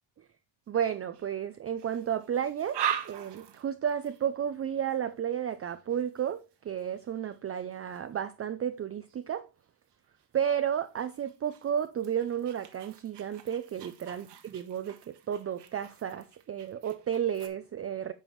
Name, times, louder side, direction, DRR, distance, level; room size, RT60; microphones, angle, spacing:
voice 1, 0.7-9.5 10.3-18.1, right 9 dB, 30° right, 0.4 m, -32 dB
sound 1, 0.8-1.3 1.8-8.3 9.1-9.3 9.9-17.5, right 9 dB, 60° right, 1.3 m, -42 dB
9.1 x 5.5 x 3.1 m
cardioid pair, 125°, 47 cm